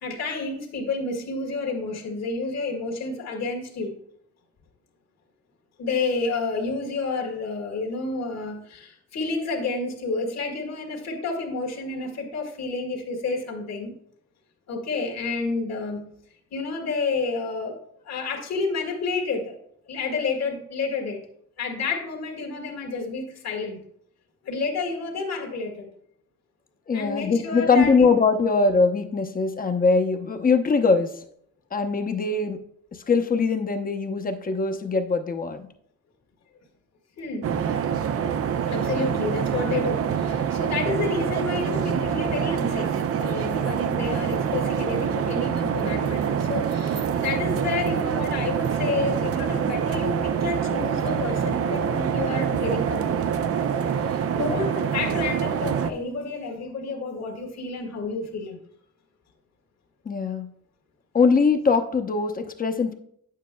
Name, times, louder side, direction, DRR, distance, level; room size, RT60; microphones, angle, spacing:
voice 1, 0.0-3.9 5.8-13.9 14.7-16.0 16.5-17.8 18.0-19.5 19.9-21.2 21.6-23.8 24.4-25.9 26.9-28.1 37.2-37.5 38.7-53.4 54.1-58.6, left 3 dB, 60° left, 0 dB, 1.8 m, -30 dB
voice 2, 26.9-31.1 31.7-32.6 33.1-35.7 60.1-60.5 61.1-62.9, left 4 dB, 30° left, 6 dB, 0.8 m, -22 dB
sound 1, 37.4-55.9, right 7 dB, 50° right, 0.6 m, -25 dB
9.0 x 7.6 x 2.2 m, 0.68 s
cardioid pair, 90°, 30 cm